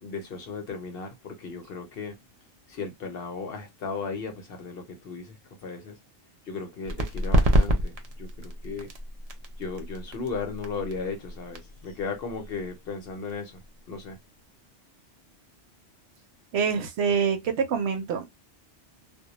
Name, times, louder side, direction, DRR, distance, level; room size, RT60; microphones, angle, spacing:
voice 1, 0.0-2.2 2.7-6.0 6.5-8.9 9.6-13.6 13.9-14.2, left 4 dB, 60° left, 0.8 m, -36 dB
sound 1, 6.9-14.2, right 1 dB, 55° right, 0.4 m, -28 dB
voice 2, 16.5-18.3, right 6 dB, 70° right, 0.8 m, -26 dB
2.2 x 2.1 x 2.8 m
omnidirectional pair, 1.2 m